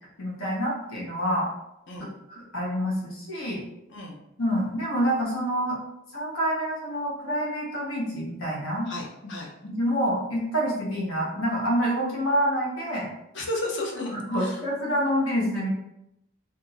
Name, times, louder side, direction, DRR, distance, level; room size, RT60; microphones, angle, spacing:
voice 1, 0.2-1.5 2.3-3.6 4.4-5.8 6.1-8.9 9.6-13.1 14.1-15.7, equal, 85° left, -4 dB, 1.1 m, -27 dB
voice 2, 8.9-9.5 13.3-14.6, left 2 dB, 60° left, 0 dB, 0.7 m, -33 dB
2.6 x 2.6 x 4.1 m, 0.86 s
head